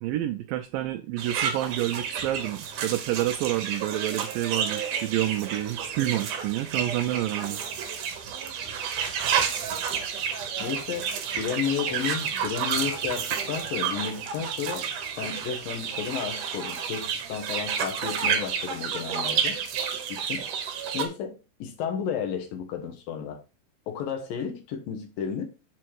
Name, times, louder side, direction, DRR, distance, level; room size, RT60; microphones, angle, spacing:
voice 1, 0.0-7.6, right 14 dB, 90° right, 2.4 m, -29 dB
sound 1, 1.2-21.1, right 7 dB, 70° right, 2.5 m, -30 dB
voice 2, 10.6-11.1 11.4-14.9 15.2-19.6 20.1-20.4 20.9-23.4 23.9-25.5, left 8 dB, 85° left, 3.1 m, -32 dB
7.0 x 4.4 x 4.7 m
omnidirectional pair, 3.9 m